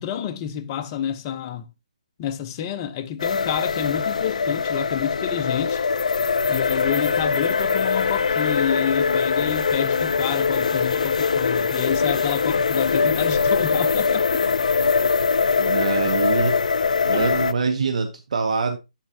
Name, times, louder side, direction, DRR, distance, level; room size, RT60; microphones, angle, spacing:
voice 1, 0.0-1.7 2.2-5.8 6.5-14.4 17.1-17.4, left 9 dB, 30° left, 0.6 m, -29 dB
sound 1, 3.2-17.5, left 5 dB, 75° left, 0.4 m, -22 dB
voice 2, 15.6-16.6 17.0-18.8, right 4 dB, 70° right, 0.8 m, -24 dB
12.5 x 4.4 x 2.8 m
hypercardioid pair, 150°, 4 cm